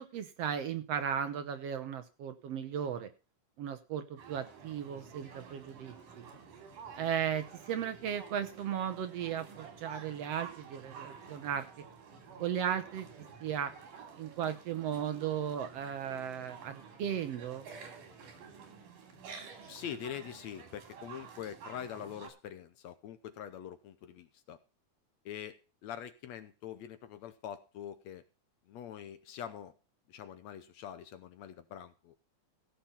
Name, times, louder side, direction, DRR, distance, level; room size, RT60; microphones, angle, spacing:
voice 1, 0.0-3.1 3.6-6.3 7.0-11.7 12.4-13.7 14.2-17.6, right 8 dB, 65° right, 10 dB, 1.7 m, -36 dB
sound 1, 4.2-22.3, right 6 dB, 90° right, 4.5 m, -51 dB
voice 2, 19.7-24.6 25.3-28.2 28.7-29.7 30.1-32.1, left 9 dB, 70° left, 11 dB, 1.9 m, -44 dB
16.0 x 6.9 x 5.6 m, 0.33 s
omnidirectional pair, 3.6 m